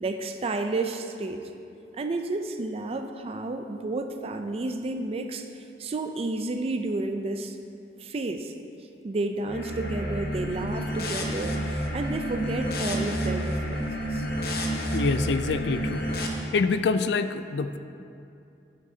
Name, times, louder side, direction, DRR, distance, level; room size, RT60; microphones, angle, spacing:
voice 1, 0.0-1.4 1.9-7.6 8.0-8.5 9.0-14.3, right 2 dB, 35° right, 6 dB, 0.4 m, -31 dB
sound 1, 9.5-16.3, equal, 60° left, 0.9 m, -30 dB
voice 2, 14.9-16.0 16.5-17.8, left 4 dB, 75° left, 10 dB, 0.4 m, -25 dB
9.0 x 8.9 x 2.7 m, 2.6 s
head